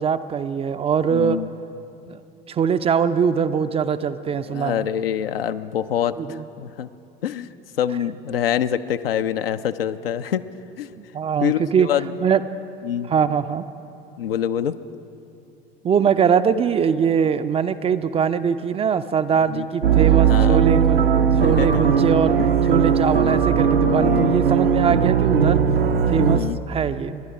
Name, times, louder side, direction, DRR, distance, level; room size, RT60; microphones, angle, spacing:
voice 1, 0.0-1.4 2.1-2.2 2.5-4.9 6.2-6.5 11.0-11.9 12.2-12.4 13.1-13.6 15.8-22.4 22.7-25.6 26.1-27.2, right 7 dB, 20° right, 11 dB, 0.4 m, -22 dB
voice 2, 1.1-1.5 4.5-6.9 7.2-7.5 7.8-10.4 10.8-10.9 11.4-12.1 12.8-13.1 14.2-14.7 19.5-19.7 20.2-20.6 21.4-21.8 22.4-22.5 23.8-24.3 26.3-26.6, left 9 dB, 70° left, 11 dB, 0.6 m, -25 dB
sound 1, 19.8-26.4, right 7 dB, 80° right, 0.7 m, -18 dB
26.5 x 11.0 x 4.8 m, 2.8 s
figure-of-eight pair, 70°, 30 cm